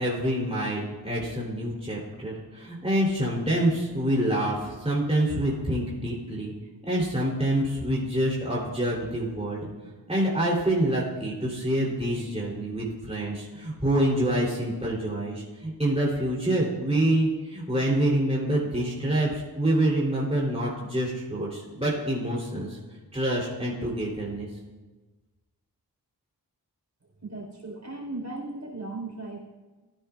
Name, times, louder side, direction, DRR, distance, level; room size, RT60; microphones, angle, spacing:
voice 1, 0.0-6.5 6.8-9.7 10.1-22.8 23.1-24.5, right 1 dB, 15° right, -5 dB, 3.4 m, -26 dB
voice 2, 27.2-29.5, right 2 dB, 40° right, -1 dB, 4.2 m, -37 dB
20.0 x 10.0 x 2.4 m, 1.3 s
cardioid pair, 45°, 41 cm